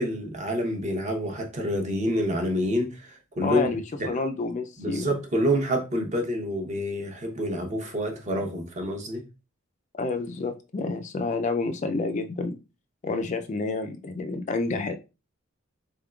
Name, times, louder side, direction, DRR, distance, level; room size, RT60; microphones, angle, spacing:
voice 1, 0.0-3.7 4.0-4.2 4.8-9.2, equal, 35° right, 0.7 m, -27 dB
voice 2, 3.4-5.1 10.0-12.6 13.0-14.9, left 3 dB, 35° left, 0.3 m, -29 dB
3.8 x 3.5 x 2.3 m
head